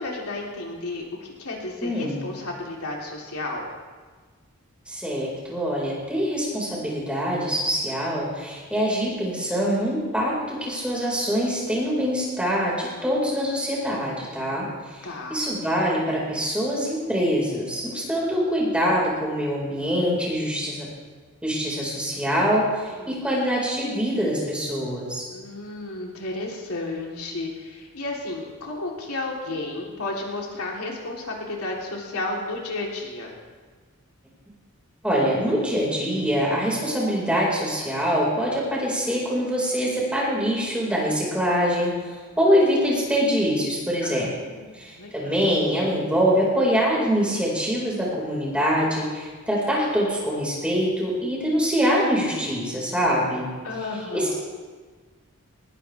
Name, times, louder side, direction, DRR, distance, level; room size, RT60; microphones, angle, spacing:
voice 1, 0.0-3.7 15.0-15.4 22.9-23.2 25.3-33.3 44.0-45.4 53.6-54.4, left 2 dB, 90° left, -2 dB, 3.5 m, -33 dB
voice 2, 1.8-2.2 4.9-14.7 15.3-20.9 21.4-25.2 35.0-41.9 42.4-44.3 44.7-53.5 54.1-54.4, equal, 5° right, -4 dB, 4.9 m, -24 dB
20.5 x 20.0 x 3.5 m, 1.4 s
head